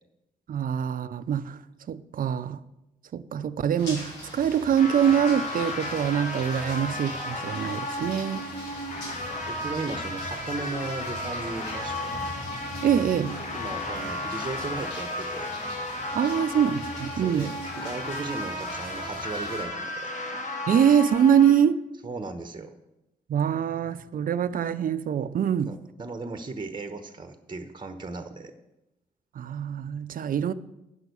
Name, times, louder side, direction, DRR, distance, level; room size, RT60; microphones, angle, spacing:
voice 1, 0.5-1.6 1.9-2.6 3.1-8.4 12.8-13.4 16.1-17.5 20.7-21.8 23.3-25.7 29.3-30.5, right 8 dB, 55° right, 0.6 m, -24 dB
sound 1, 3.8-19.6, left 1 dB, 85° left, 2.7 m, -41 dB
sound 2, 4.8-21.5, left 1 dB, 45° left, 1.8 m, -34 dB
voice 2, 9.3-12.2 13.5-15.5 17.2-20.1 22.0-22.7 25.7-28.5, right 3 dB, 25° right, 1.0 m, -36 dB
9.3 x 6.0 x 6.8 m
hypercardioid pair, 45°, 17 cm